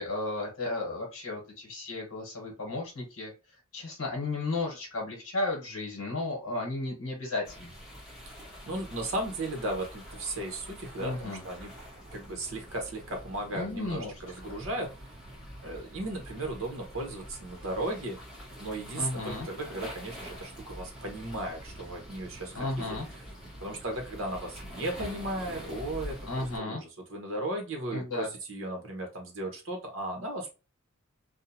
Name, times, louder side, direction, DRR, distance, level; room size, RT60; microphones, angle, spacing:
voice 1, 0.0-3.3 3.7-7.7 11.0-11.4 13.5-14.1 18.9-19.5 22.5-23.1 26.3-26.8 27.9-28.3, left 2 dB, 90° left, -2 dB, 1.0 m, -34 dB
sound 1, 7.4-26.6, equal, ahead, 0.8 m, -45 dB
voice 2, 8.7-11.7 12.1-14.9 15.6-18.2 18.6-22.7 23.6-30.5, right 1 dB, 60° right, 3 dB, 0.9 m, -36 dB
2.6 x 2.1 x 2.7 m, 0.29 s
head